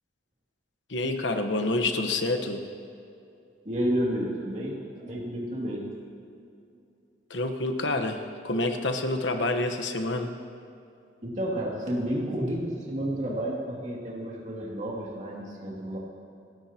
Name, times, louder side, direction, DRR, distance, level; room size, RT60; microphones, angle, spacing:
voice 1, 0.9-2.7 7.3-10.3, left 2 dB, 80° left, 6 dB, 1.2 m, -28 dB
voice 2, 3.6-5.9 11.2-16.0, equal, 40° right, -4 dB, 2.6 m, -31 dB
28.0 x 13.5 x 2.9 m, 2.6 s
head